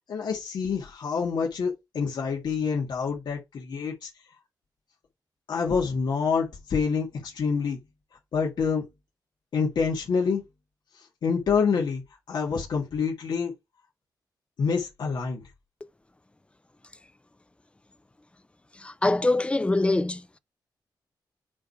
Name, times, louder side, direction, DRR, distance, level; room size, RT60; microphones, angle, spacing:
voice 1, 0.1-4.1 5.5-7.8 8.3-8.8 9.5-10.4 10.9-12.0 12.3-13.5 14.6-15.4, left 5 dB, 75° left, 2.2 m, -27 dB
voice 2, 18.8-20.4, left 2 dB, 15° left, 0.7 m, -24 dB
8.4 x 3.4 x 4.5 m
wide cardioid pair, 115°, 8 cm